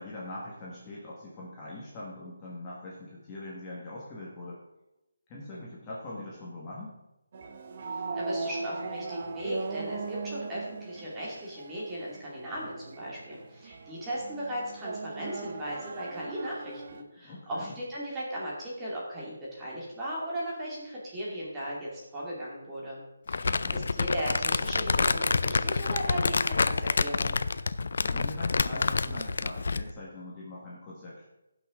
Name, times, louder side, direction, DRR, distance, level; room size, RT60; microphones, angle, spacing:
voice 1, 0.0-4.6 5.3-7.0 17.2-17.8 23.3-23.9 28.0-31.3, left 2 dB, 15° left, -6 dB, 1.8 m, -42 dB
sound 1, 7.3-17.0, right 3 dB, 35° right, 0.9 m, -39 dB
voice 2, 7.9-23.0 23.3-27.3, equal, 10° right, -7 dB, 2.4 m, -37 dB
Crumpling crinkling, 23.3-29.9, left 4 dB, 60° left, 0.5 m, -27 dB
17.0 x 6.2 x 3.8 m, 0.94 s
hypercardioid pair, 170°, 0 cm